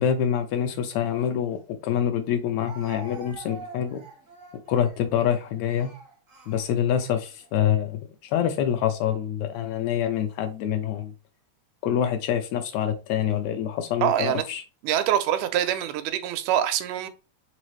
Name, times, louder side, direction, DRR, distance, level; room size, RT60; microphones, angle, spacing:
voice 1, 0.0-4.0 4.7-5.9 6.5-11.1 11.8-14.6, left 9 dB, 80° left, 1.7 m, -26 dB
Speech, 1.5-1.6 2.6-7.5 8.3-8.6 9.5-10.1, right 5 dB, 55° right, 0.8 m, -47 dB
voice 2, 14.0-14.5 14.8-17.1, right 11 dB, 85° right, 2.1 m, -24 dB
4.8 x 3.4 x 3.1 m
omnidirectional pair, 3.4 m